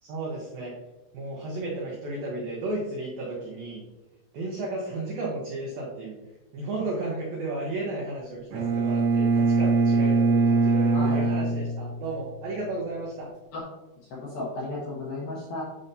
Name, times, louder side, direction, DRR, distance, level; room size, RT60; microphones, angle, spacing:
voice 1, 0.0-0.7 1.1-3.8 4.3-6.2 6.5-13.3, right 2 dB, 90° right, -3 dB, 2.0 m, -33 dB
Bowed string instrument, 8.5-12.4, right 3 dB, 70° right, 2.7 m, -23 dB
voice 2, 10.9-11.2 13.5-13.6 14.1-15.6, left 2 dB, 75° left, -5 dB, 2.3 m, -34 dB
8.9 x 5.3 x 2.8 m, 1.0 s
omnidirectional pair, 5.7 m